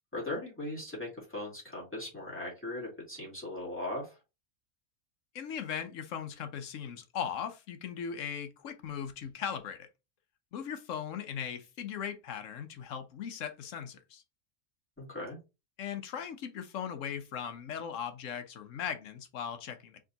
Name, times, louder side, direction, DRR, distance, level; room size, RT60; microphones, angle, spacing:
voice 1, 0.1-4.2 15.0-15.4, left 1 dB, 10° left, 2.7 m, -39 dB
voice 2, 5.3-9.9 10.5-14.2 15.8-20.0, left 8 dB, 70° left, 1.1 m, -38 dB
4.8 x 3.5 x 2.8 m
omnidirectional pair, 1.4 m